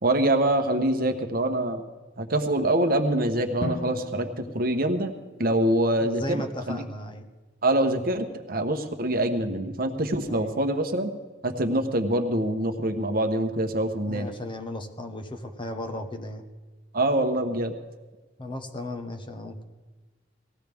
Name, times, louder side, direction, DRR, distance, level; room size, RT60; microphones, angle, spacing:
voice 1, 0.0-1.8 2.2-5.1 5.4-6.4 6.7-6.8 7.6-11.1 11.4-14.3 16.9-17.7, right 1 dB, 55° right, 5 dB, 1.1 m, -25 dB
Drum, 3.6-5.5, left 2 dB, 45° left, 0.6 m, -37 dB
voice 2, 6.0-7.3 10.2-10.5 14.0-16.4 18.4-19.6, left 1 dB, 30° left, 5 dB, 1.1 m, -35 dB
18.5 x 15.5 x 3.5 m, 1.3 s
head